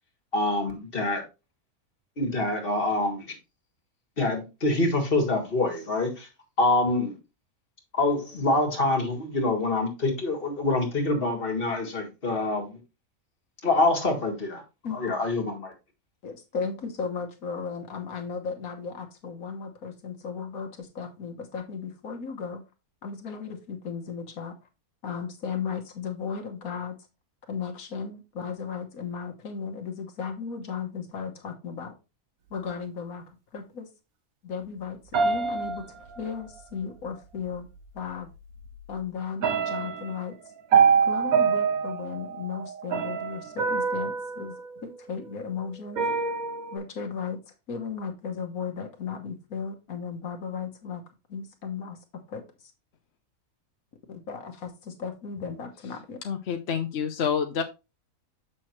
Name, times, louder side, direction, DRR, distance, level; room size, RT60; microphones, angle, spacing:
voice 1, 0.3-1.2 2.2-3.4 4.2-6.3 6.6-7.2 7.9-12.8 13.6-14.6 14.9-15.7, left 2 dB, 40° left, 2.1 m, -26 dB
voice 2, 16.2-22.6 23.0-24.6 25.0-27.1 27.5-31.9 32.5-33.9 34.4-37.7 37.9-38.3 38.9-40.4 41.0-46.0 46.7-47.4 47.7-51.0 51.3-52.7 54.1-56.2, left 6 dB, 75° left, 1.6 m, -35 dB
sound 1, 35.1-36.6 37.8-37.9 38.3-38.9 39.4-45.3 46.0-46.8, right 6 dB, 75° right, 1.5 m, -26 dB
voice 3, 56.2-57.6, left 7 dB, 55° left, 0.8 m, -28 dB
7.3 x 6.3 x 3.1 m
omnidirectional pair, 1.5 m